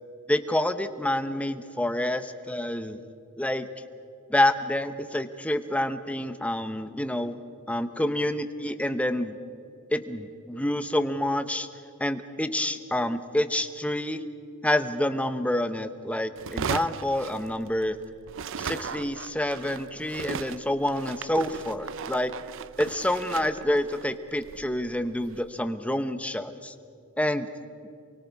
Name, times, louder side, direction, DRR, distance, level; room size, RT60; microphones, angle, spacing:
voice 1, 0.3-3.0 3.4-3.7 4.3-7.4 7.7-9.4 9.9-11.7 12.0-14.2 14.6-18.0 18.6-22.3 22.8-26.7 27.2-27.5, left 1 dB, 5° left, 9 dB, 0.9 m, -28 dB
sound 1, 16.4-18.0 18.3-25.5, right 6 dB, 60° right, 0.6 m, -37 dB
28.5 x 24.0 x 4.7 m, 2.6 s
head